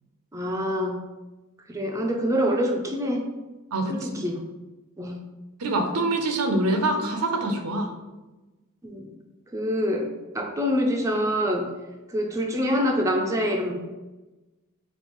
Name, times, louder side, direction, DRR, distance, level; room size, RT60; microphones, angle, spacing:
voice 1, 0.3-1.0 1.7-3.3 3.9-4.4 5.0-5.2 8.8-9.1 9.5-10.1 10.3-11.7 12.1-13.7, equal, 15° right, 1 dB, 0.4 m, -25 dB
voice 2, 3.7-4.3 5.6-7.9, right 2 dB, 85° right, 5 dB, 0.6 m, -25 dB
5.3 x 2.4 x 3.0 m, 1.1 s
head